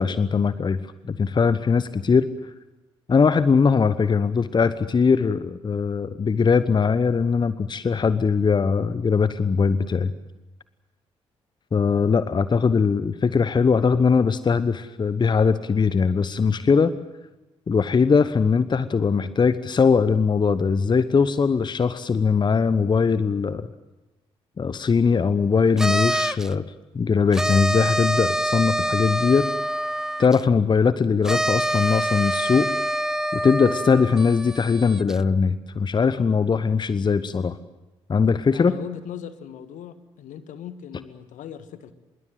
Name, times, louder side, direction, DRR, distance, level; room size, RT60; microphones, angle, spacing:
voice 1, 0.0-2.3 3.1-10.1 11.7-16.9 17.7-23.7 24.6-26.6 26.9-29.5 30.2-32.7 33.3-37.6 38.1-38.7, left 5 dB, 30° left, 15 dB, 0.9 m, -20 dB
sound 1, 25.8-26.5 27.3-30.4 31.2-35.2, right 1 dB, 5° right, 0.7 m, -26 dB
voice 2, 38.5-41.9, left 9 dB, 55° left, 12 dB, 1.5 m, -39 dB
25.0 x 22.0 x 7.7 m, 1.1 s
figure-of-eight pair, 40°, 15 cm